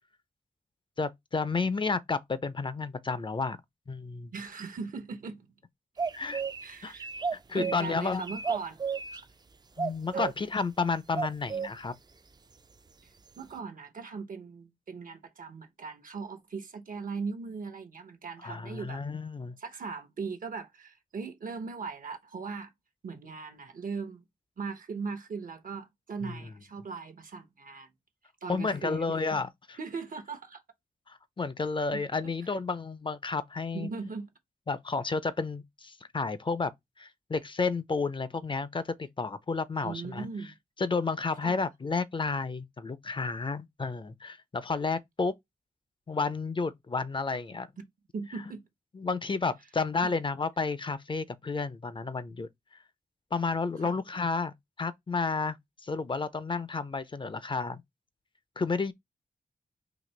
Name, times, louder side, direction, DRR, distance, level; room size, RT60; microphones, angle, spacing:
voice 1, 1.0-3.6 3.9-4.3 6.2-6.4 6.8-6.9 7.3-8.2 9.8-11.9 18.4-19.6 26.2-26.4 28.5-29.5 31.1-33.9 34.7-36.7 37.0-40.3 40.8-45.3 46.1-47.7 48.9-52.5 53.3-55.6 55.8-57.8 58.6-58.9, left 4 dB, 35° left, 0.5 m, -31 dB
voice 2, 4.3-5.5 6.6-7.1 7.5-8.8 9.1-9.2 10.1-10.3 13.0-13.1 13.3-19.0 19.6-22.7 23.0-24.2 24.6-27.9 28.4-29.1 29.8-30.6 31.9-32.0 33.7-34.3 39.8-40.6 41.4-41.6 48.1-48.6 50.0-50.1 53.8-54.0, right 5 dB, 65° right, 0.9 m, -39 dB
sound 1, 6.0-6.6 6.9-7.9 8.2-9.2 9.8-10.3 11.1-11.7, right 5 dB, 30° right, 0.3 m, -32 dB
4.0 x 2.7 x 3.2 m
cardioid pair, 55°, 15 cm